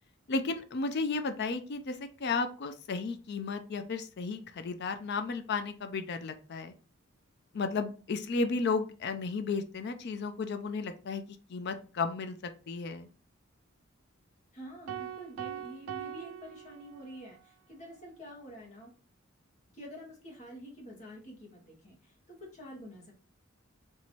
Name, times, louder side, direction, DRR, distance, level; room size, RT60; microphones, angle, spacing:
voice 1, 0.3-6.7 7.5-11.2 11.5-12.4 12.7-13.1, left 4 dB, 55° left, 8 dB, 0.4 m, -33 dB
voice 2, 14.5-18.9 19.7-23.1, equal, 35° left, -2 dB, 1.5 m, -48 dB
sound 1, 14.9-17.4, right 10 dB, 75° right, 0.3 m, -42 dB
4.5 x 3.0 x 2.8 m, 0.36 s
head